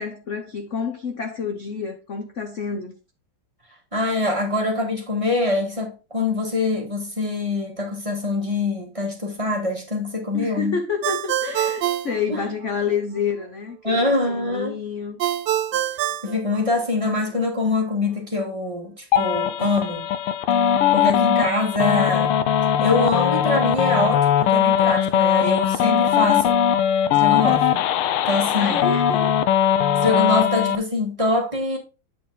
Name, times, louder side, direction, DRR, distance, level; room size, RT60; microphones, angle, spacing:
voice 1, 0.0-2.9 10.3-15.2 28.6-29.4, left 6 dB, 50° left, 0.9 m, -29 dB
voice 2, 3.9-10.8 12.3-12.4 13.8-14.7 16.2-20.1 20.9-22.3 22.8-26.5 27.1-27.9 28.3-28.9 30.0-31.8, left 2 dB, 15° right, 1.8 m, -24 dB
Ringtone, 11.0-13.0 15.2-17.2, right 12 dB, 80° right, 1.4 m, -26 dB
sound 1, 19.1-30.8, left 9 dB, 85° left, 1.5 m, -20 dB
9.2 x 4.3 x 4.0 m
omnidirectional pair, 2.3 m